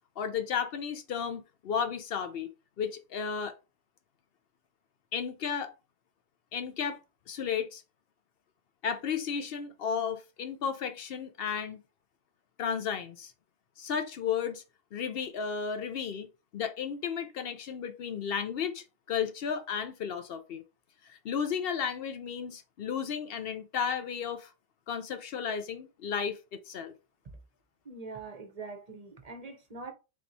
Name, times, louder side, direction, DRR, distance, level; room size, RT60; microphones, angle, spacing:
voice 1, 0.2-3.5 5.1-5.7 6.5-7.0 7.3-7.8 8.8-11.8 12.6-13.3 13.8-14.6 14.9-16.3 16.5-20.6 21.0-24.5 24.9-26.9, left 7 dB, 60° left, 0.7 m, -33 dB
voice 2, 27.8-29.9, right 3 dB, 35° right, 0.8 m, -43 dB
3.5 x 2.9 x 4.0 m
omnidirectional pair, 1.2 m